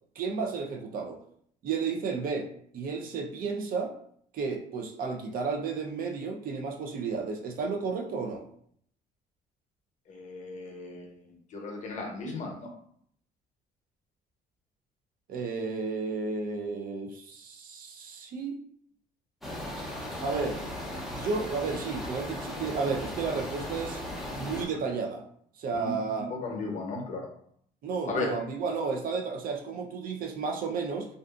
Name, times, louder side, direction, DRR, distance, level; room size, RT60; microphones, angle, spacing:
voice 1, 0.2-1.2 1.6-2.5 2.7-3.9 4.3-8.4 15.3-18.6 20.2-20.6 21.1-24.0 24.4-25.2 25.6-26.3 27.8-31.1, right 4 dB, 60° right, 3 dB, 0.5 m, -32 dB
voice 2, 10.1-12.7 25.7-26.0 26.3-27.3 28.1-28.3, left 3 dB, 45° left, 1 dB, 0.8 m, -35 dB
sound 1, 19.4-24.7, left 1 dB, ahead, 0.6 m, -37 dB
2.5 x 2.4 x 2.4 m, 0.65 s
cardioid pair, 110°, 17 cm